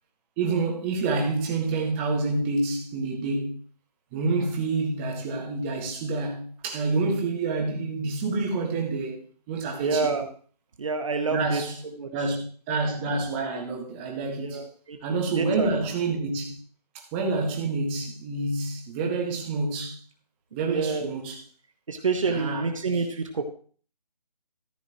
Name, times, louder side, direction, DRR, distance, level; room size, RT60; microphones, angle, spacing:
voice 1, 0.4-3.6 4.1-9.2 9.5-10.1 11.3-11.8 12.1-14.6 15.0-16.6 16.9-20.0 20.5-21.4 22.3-23.0, right 3 dB, 15° right, 1.8 m, -28 dB
voice 2, 9.8-10.3 10.8-11.6 12.0-12.1 14.4-15.0 15.4-15.7 20.7-21.1 21.9-23.5, right 4 dB, 50° right, 1.2 m, -27 dB
14.0 x 9.7 x 3.1 m
figure-of-eight pair, 155°, 21 cm